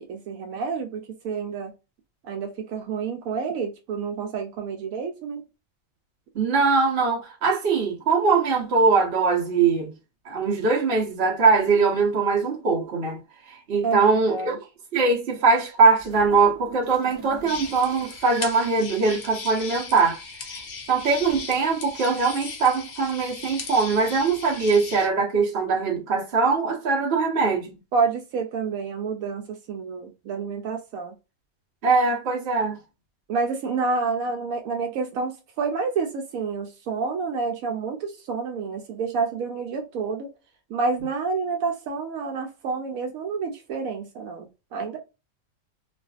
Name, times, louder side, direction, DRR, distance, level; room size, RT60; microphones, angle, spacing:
voice 1, 0.0-1.7 2.2-5.4 13.8-14.5 27.9-31.1 33.3-40.3 40.7-45.0, right 4 dB, 80° right, 1.0 m, -29 dB
voice 2, 6.3-9.9 10.2-13.2 13.5-14.5 14.9-20.2 20.9-27.7 31.8-32.8, right 4 dB, 50° right, 1.0 m, -21 dB
sound 1, 16.0-18.3 19.5-19.9 21.1-21.4, right 1 dB, 25° right, 0.9 m, -43 dB
sound 2, 17.5-25.1, left 5 dB, 55° left, 0.7 m, -37 dB
2.5 x 2.4 x 2.3 m
omnidirectional pair, 1.4 m